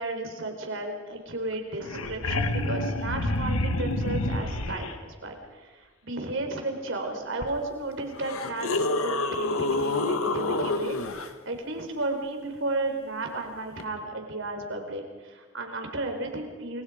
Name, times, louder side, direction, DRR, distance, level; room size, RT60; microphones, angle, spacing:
voice 1, 0.0-16.8, right 2 dB, 60° right, 4 dB, 4.4 m, -33 dB
sound 1, 1.5-1.6 1.8-4.9 7.4-7.5 8.2-11.3 13.8-13.9, left 2 dB, 80° left, 1.7 m, -28 dB
29.0 x 22.0 x 5.1 m, 1.4 s
head